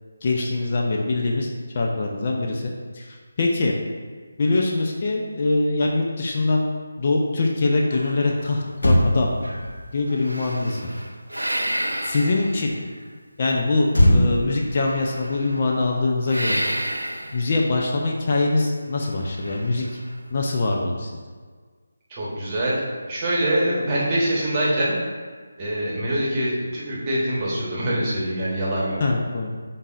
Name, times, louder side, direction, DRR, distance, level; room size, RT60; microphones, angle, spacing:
voice 1, 0.2-1.5 1.7-3.7 4.4-6.6 7.0-9.3 9.9-10.9 12.0-12.7 13.4-16.6 17.3-20.0 20.3-21.1 29.0-29.6, left 2 dB, 40° left, 0 dB, 0.5 m, -23 dB
sound 1, 7.9-9.1 9.4-13.1 14.7-15.8 16.3-17.6 19.1-20.2, right 1 dB, 90° right, 0.4 m, -31 dB
Motor vehicle (road), 8.7-12.3 13.9-16.5 16.8-17.0, equal, 75° left, 0.7 m, -24 dB
voice 2, 22.1-22.8 23.1-25.0 25.6-29.0, right 1 dB, 25° right, -6 dB, 1.1 m, -24 dB
5.4 x 3.9 x 2.4 m, 1.6 s
figure-of-eight pair, 155°, 0 cm